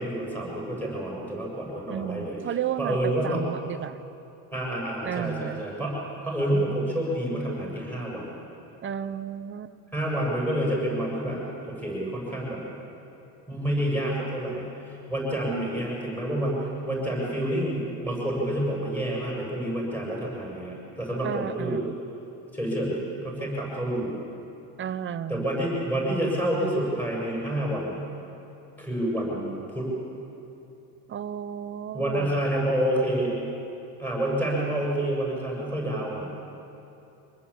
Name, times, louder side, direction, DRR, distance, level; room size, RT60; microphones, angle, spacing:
voice 1, 0.0-2.4 2.8-3.4 4.5-8.3 9.9-12.6 13.5-21.8 22.5-24.1 25.3-28.0 28.8-29.9 31.9-33.3 34.0-36.3, right 1 dB, 5° left, -3 dB, 7.4 m, -28 dB
voice 2, 1.9-4.0 5.0-5.6 8.8-9.7 15.4-15.7 21.2-21.9 24.8-25.5 31.1-32.3, right 9 dB, 30° right, 11 dB, 0.7 m, -33 dB
25.5 x 19.5 x 8.6 m, 2.8 s
supercardioid pair, 125°, 43 cm